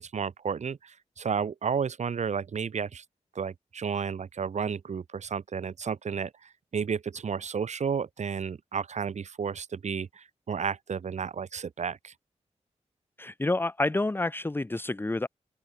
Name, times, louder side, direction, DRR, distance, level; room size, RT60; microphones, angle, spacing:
voice 1, 0.0-3.0 3.3-12.1, right 6 dB, 75° right, 6.1 m, -32 dB
voice 2, 13.2-15.3, left 2 dB, 20° left, 1.6 m, -28 dB
open air
wide cardioid pair, 125°, 12 cm